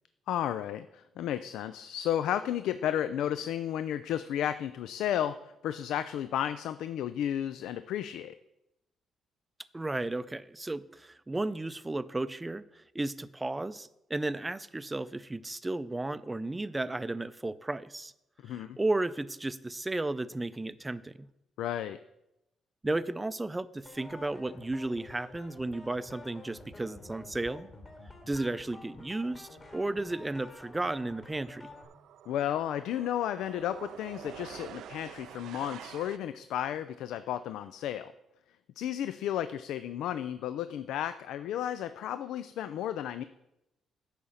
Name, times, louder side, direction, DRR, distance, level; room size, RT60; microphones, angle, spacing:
voice 1, 0.3-8.3 18.4-18.8 21.6-22.0 32.3-38.1 38.8-43.2, left 10 dB, 80° left, 13 dB, 0.3 m, -33 dB
voice 2, 9.7-18.1 18.5-21.3 22.8-27.7 28.3-31.7, right 2 dB, 15° right, 15 dB, 0.5 m, -34 dB
sound 1, 23.8-31.8, left 2 dB, 35° left, 2.1 m, -50 dB
sound 2, 29.4-29.6 29.9-36.2, right 10 dB, 80° right, 0.4 m, -48 dB
10.5 x 4.2 x 7.1 m, 0.88 s
cardioid pair, 75°, 0 cm